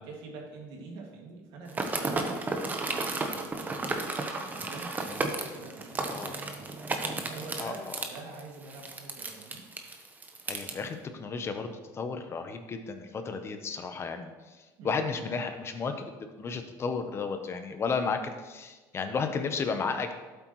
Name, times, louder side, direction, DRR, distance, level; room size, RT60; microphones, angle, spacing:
voice 1, 0.0-4.0 4.6-6.7 7.2-9.6 14.8-15.3, right 3 dB, 75° right, -1 dB, 2.3 m, -45 dB
sound 1, 1.7-10.7, right 3 dB, 20° right, 1.0 m, -33 dB
voice 2, 10.5-11.7 11.9-14.3 14.8-16.1 16.4-20.1, left 5 dB, 30° left, 7 dB, 0.8 m, -33 dB
12.0 x 8.1 x 3.1 m, 1.2 s
cardioid pair, 130°, 8 cm